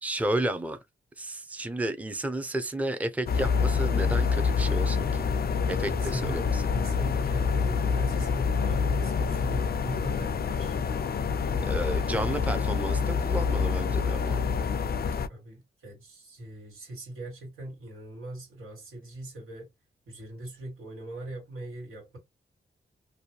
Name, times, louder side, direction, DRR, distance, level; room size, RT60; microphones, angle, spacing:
voice 1, 0.0-0.8 1.2-5.3 5.7-6.6 11.5-14.4, right 1 dB, 5° right, 0.6 m, -32 dB
sound 1, 3.3-15.3, left 5 dB, 45° left, 0.4 m, -27 dB
voice 2, 5.7-6.4 6.7-10.8 15.3-19.7 20.1-22.2, right 1 dB, 85° right, 1.7 m, -40 dB
2.6 x 2.2 x 2.9 m
supercardioid pair, 40°, 21 cm